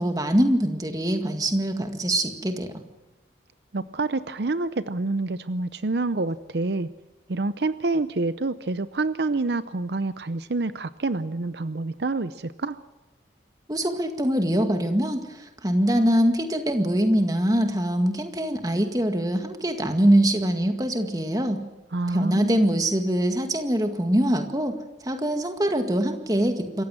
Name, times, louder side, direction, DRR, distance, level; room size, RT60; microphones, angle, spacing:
voice 1, 0.0-2.8 13.7-21.6 22.1-24.8 25.0-26.8, right 1 dB, 20° right, 6 dB, 1.9 m, -23 dB
voice 2, 3.7-6.9 7.3-12.8 21.9-22.7, right 3 dB, 70° right, 14 dB, 0.7 m, -27 dB
27.0 x 15.0 x 7.7 m, 1.0 s
head